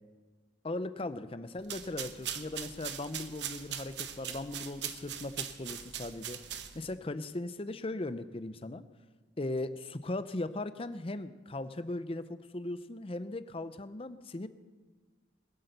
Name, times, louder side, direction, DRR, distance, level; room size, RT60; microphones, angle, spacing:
voice 1, 0.6-6.4 6.7-8.8 9.4-14.5, left 2 dB, 30° left, 12 dB, 0.6 m, -38 dB
sound 1, 1.6-7.0, right 9 dB, 70° right, 1.0 m, -41 dB
20.5 x 8.4 x 6.7 m, 1.4 s
head